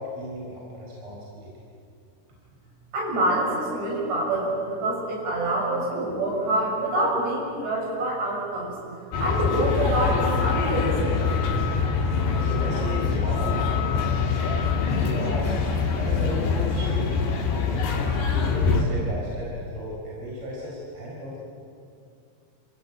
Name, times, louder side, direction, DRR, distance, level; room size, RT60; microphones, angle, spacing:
voice 1, 0.0-1.5 12.1-15.6 16.0-17.9 18.3-21.4, equal, 30° right, -4 dB, 5.2 m, -36 dB
voice 2, 2.9-8.7 9.2-11.2, right 1 dB, 75° right, -3 dB, 8.9 m, -26 dB
sound 1, 9.1-18.8, left 5 dB, 70° left, 4.8 m, -24 dB
29.0 x 15.5 x 9.2 m, 2.4 s
omnidirectional pair, 5.1 m